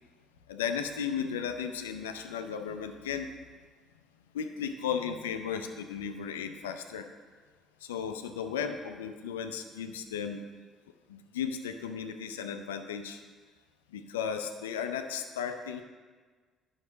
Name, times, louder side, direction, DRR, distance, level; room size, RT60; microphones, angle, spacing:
voice 1, 0.5-3.3 4.3-7.1 7.8-10.4 11.1-13.2 13.9-15.8, left 7 dB, 85° left, 7 dB, 0.6 m, -35 dB
11.0 x 6.3 x 4.0 m, 1.5 s
hypercardioid pair, 50°, 0 cm